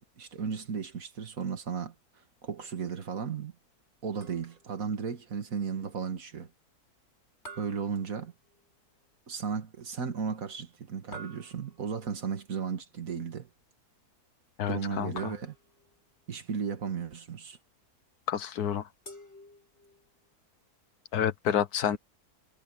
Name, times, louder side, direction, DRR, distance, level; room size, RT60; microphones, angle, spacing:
voice 1, 0.2-1.9 2.4-3.5 4.0-6.5 7.6-8.3 9.3-13.5 14.7-15.6 16.3-17.6, right 6 dB, 60° right, 2.1 m, -35 dB
sound 1, 4.2-4.8 7.5-8.7 11.1-12.0 15.2-16.0 19.1-20.1, right 2 dB, 40° left, 8.3 m, -49 dB
voice 2, 14.6-15.3 18.3-18.8 21.1-22.0, left 9 dB, 80° left, 1.5 m, -29 dB
omnidirectional pair, 1.6 m